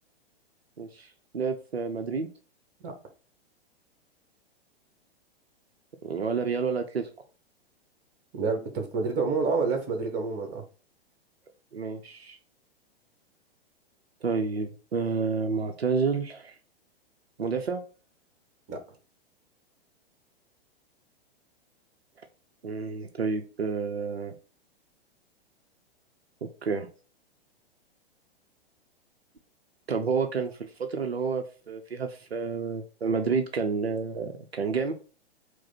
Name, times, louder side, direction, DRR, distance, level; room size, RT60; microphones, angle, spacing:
voice 1, 0.8-1.1 1.3-2.3 6.0-7.1 11.7-12.4 14.2-16.5 17.4-17.8 22.6-24.3 26.6-26.9 29.9-30.5 30.8-34.9, right 5 dB, 80° right, 5 dB, 0.6 m, -29 dB
voice 2, 8.3-10.6 18.7-18.8, right 4 dB, 30° right, 5 dB, 1.2 m, -28 dB
4.8 x 2.1 x 4.0 m, 0.37 s
figure-of-eight pair, 105°, 31 cm